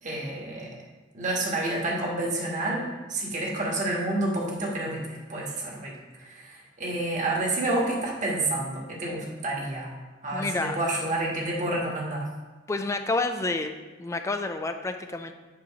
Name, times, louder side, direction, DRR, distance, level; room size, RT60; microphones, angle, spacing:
voice 1, 0.0-0.7 1.1-5.9 6.2-9.9 10.2-12.2, right 2 dB, 45° right, -2 dB, 1.4 m, -29 dB
voice 2, 10.3-10.8 12.7-13.7 14.0-15.3, left 3 dB, 15° left, 7 dB, 0.4 m, -29 dB
8.4 x 3.1 x 5.0 m, 1.2 s
head